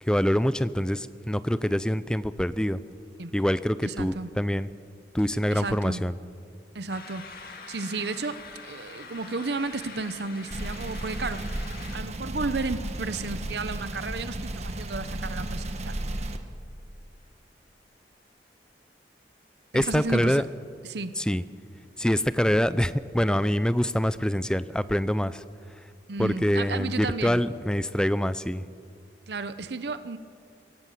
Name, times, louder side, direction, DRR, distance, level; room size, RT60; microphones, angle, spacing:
voice 1, 0.0-2.8 3.3-4.7 5.1-6.2 19.7-20.4 21.2-21.4 22.0-25.4 26.2-28.7, equal, 5° left, 15 dB, 0.5 m, -25 dB
voice 2, 3.8-4.3 5.5-6.0 6.7-7.3 7.7-11.5 11.9-16.0 19.7-20.4 20.8-21.1 26.1-27.4 29.3-30.2, right 3 dB, 70° right, 12 dB, 0.8 m, -33 dB
sound 1, 6.9-12.0, left 4 dB, 55° left, 2.1 m, -44 dB
sound 2, 10.5-16.4, right 1 dB, 40° right, 1.3 m, -34 dB
24.0 x 16.5 x 7.7 m, 2.2 s
head